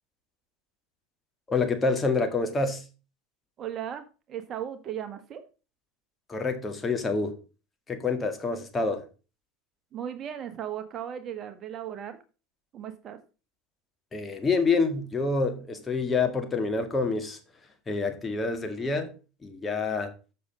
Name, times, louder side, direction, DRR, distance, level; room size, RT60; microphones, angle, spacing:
voice 1, 1.5-2.8 6.3-7.4 7.9-9.0 14.1-17.4 17.9-19.1 19.4-20.1, left 4 dB, 20° left, 1.9 m, -27 dB
voice 2, 3.6-4.0 4.3-5.4 9.9-12.2 12.7-13.2, right 10 dB, 40° right, 1.3 m, -36 dB
7.6 x 6.7 x 5.1 m
hypercardioid pair, 90°, 0 cm